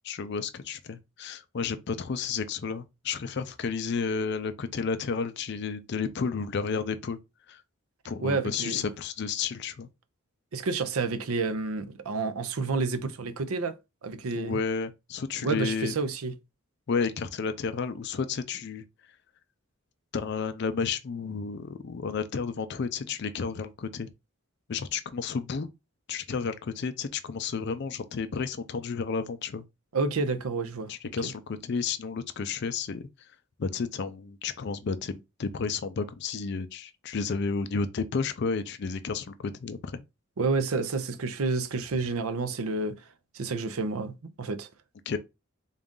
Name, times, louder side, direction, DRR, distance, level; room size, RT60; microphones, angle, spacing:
voice 1, 0.0-7.2 7.5-7.6 8.0-9.9 14.4-16.0 16.9-18.8 20.1-24.1 24.7-25.7 26.1-29.6 30.9-33.1 33.6-40.0 45.1-45.2, left 5 dB, 55° left, 0.4 m, -32 dB
voice 2, 8.2-8.8 10.5-13.7 14.0-14.6 15.4-16.3 29.9-30.9 31.2-31.3 40.4-43.0 43.3-44.7, right 4 dB, 80° right, 0.5 m, -29 dB
3.9 x 2.4 x 3.6 m
head